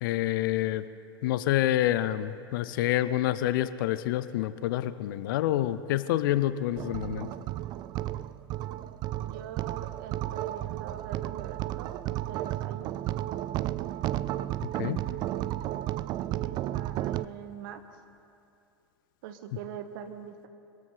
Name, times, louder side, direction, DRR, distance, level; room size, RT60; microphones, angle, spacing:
voice 1, 0.0-0.8 1.2-7.3 14.8-15.0, left 13 dB, 55° left, 14 dB, 0.6 m, -27 dB
sound 1, 6.7-17.2, right 14 dB, 30° right, 0.4 m, -33 dB
voice 2, 9.2-12.0 12.3-12.9 16.4-17.8 19.2-20.5, right 9 dB, 50° right, 8 dB, 1.3 m, -43 dB
26.0 x 13.5 x 4.0 m, 2.5 s
figure-of-eight pair, 85°, 14 cm